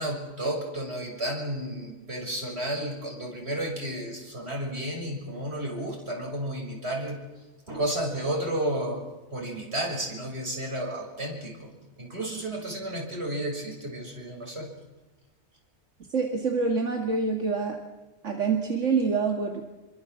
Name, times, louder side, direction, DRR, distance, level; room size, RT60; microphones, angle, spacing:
voice 1, 0.0-7.2 7.7-9.0 9.3-11.7 12.0-14.7, right 1 dB, 60° right, 2 dB, 6.6 m, -32 dB
voice 2, 16.1-17.8 18.2-19.6, right 4 dB, 85° right, 2 dB, 2.5 m, -26 dB
27.5 x 23.5 x 7.5 m, 1.1 s
omnidirectional pair, 1.2 m